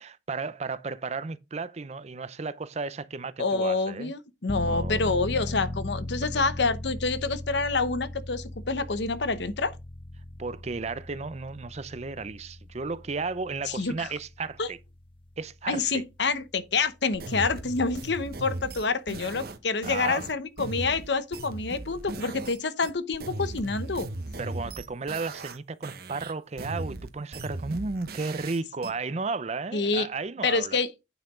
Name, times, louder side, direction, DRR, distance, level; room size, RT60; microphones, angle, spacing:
voice 1, 0.0-4.1 4.6-5.3 6.3-6.4 10.4-14.8 15.4-16.0 19.8-20.2 24.4-30.8, right 4 dB, 35° right, 0.5 m, -34 dB
voice 2, 3.4-9.7 13.7-14.1 14.6-14.7 15.7-24.1 29.7-30.1 30.4-30.9, left 4 dB, 70° left, 0.9 m, -27 dB
sound 1, 4.5-17.0 17.4-17.5, left 1 dB, 30° left, 0.8 m, -38 dB
sound 2, 17.1-22.6 22.8-25.6 25.8-28.9, right 2 dB, 55° right, 1.0 m, -38 dB
9.1 x 5.7 x 3.7 m
head